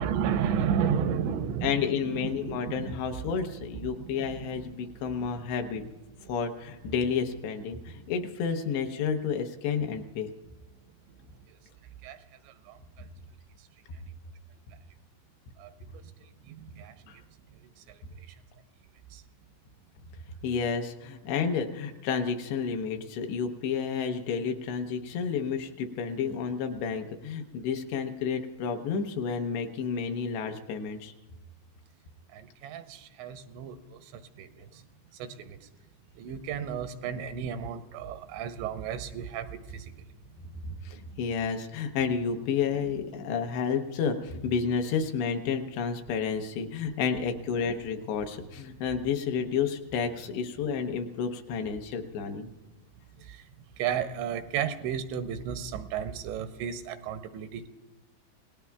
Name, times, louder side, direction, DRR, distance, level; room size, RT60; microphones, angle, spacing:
voice 1, 0.0-3.3 3.7-4.5 11.2-11.3 12.0-12.2 12.4-12.8 15.6-16.0 16.4-17.2 17.9-18.4 19.1-19.2 32.3-34.8 35.2-35.7 36.2-39.9 53.2-53.5 53.8-57.7, right 8 dB, 85° right, 9 dB, 2.9 m, -33 dB
voice 2, 1.6-5.8 6.3-10.3 17.1-17.2 20.4-31.1 40.6-52.5, left 6 dB, 75° left, 5 dB, 2.9 m, -31 dB
30.0 x 18.0 x 2.3 m, 1.1 s
omnidirectional pair, 5.2 m